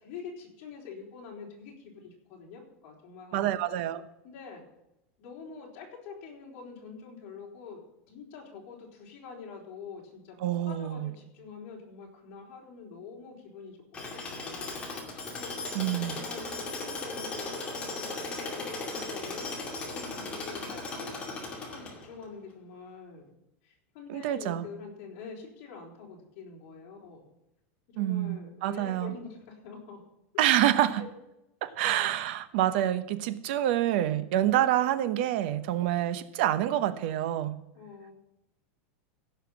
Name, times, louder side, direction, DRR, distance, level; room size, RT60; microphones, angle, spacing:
voice 1, 0.0-3.6 4.2-4.6 5.2-7.8 8.1-10.4 10.6-13.8 14.0-14.8 15.3-15.5 16.1-23.3 23.6-27.3 27.9-30.0 30.3-30.5 30.9-31.1 31.6-31.9 35.8-36.0 37.7-38.1, left 5 dB, 45° left, -2 dB, 4.3 m, -46 dB
voice 2, 3.3-4.0 10.4-11.1 15.7-16.2 24.1-24.7 28.0-29.1 30.4-31.0 31.6-37.5, right 12 dB, 55° right, 13 dB, 0.9 m, -27 dB
Tools, 13.9-22.2, left 3 dB, 15° left, 2.3 m, -37 dB
16.0 x 5.8 x 7.2 m, 0.88 s
supercardioid pair, 170°, 7 cm